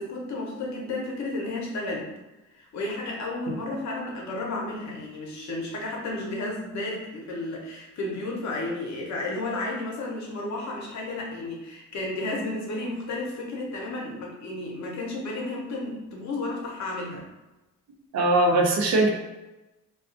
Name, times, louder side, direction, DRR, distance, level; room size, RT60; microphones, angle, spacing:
voice 1, 0.0-2.1 2.5-17.3, left 2 dB, 65° left, -2 dB, 0.8 m, -32 dB
voice 2, 18.1-19.1, right 2 dB, 60° right, 1 dB, 0.5 m, -20 dB
2.3 x 2.3 x 2.5 m, 1.0 s
cardioid pair, 90°, 30 cm